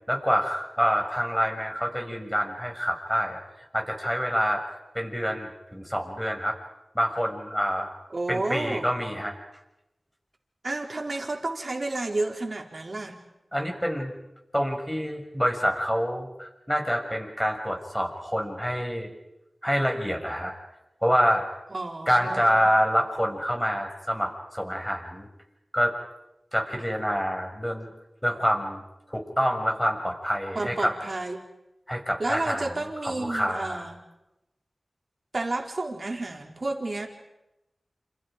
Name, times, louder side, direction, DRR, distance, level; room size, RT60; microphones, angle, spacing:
voice 1, 0.1-3.4 3.7-4.6 4.9-6.5 6.9-7.9 8.3-9.3 13.5-14.1 14.5-19.1 19.6-20.5 21.0-21.4 22.1-25.3 25.7-25.9 26.5-27.9 28.2-28.8 29.1-30.9 31.9-32.7 33.0-33.9, equal, 5° left, 2 dB, 6.6 m, -26 dB
voice 2, 8.1-8.9 10.6-13.2 21.7-22.7 30.5-31.4 32.2-34.0 35.3-37.1, right 2 dB, 55° right, 2 dB, 4.3 m, -31 dB
28.5 x 28.5 x 5.2 m, 0.92 s
cardioid pair, 40°, 0 cm